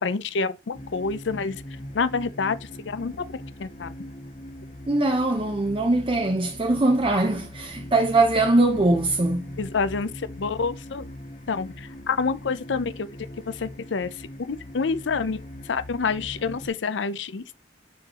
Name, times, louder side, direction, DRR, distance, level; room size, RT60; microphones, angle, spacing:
voice 1, 0.0-1.6 1.9-2.6 2.9-3.2 3.6-3.9 9.6-10.1 10.4-11.0 11.5-13.1 13.6-14.1 14.5-15.4 15.7-17.6, left 4 dB, 80° left, 0.6 m, -27 dB
sound 1, 0.7-16.7, left 1 dB, 45° left, 1.4 m, -41 dB
voice 2, 4.9-9.5, right 2 dB, 30° right, 0.7 m, -22 dB
9.4 x 3.8 x 3.0 m
head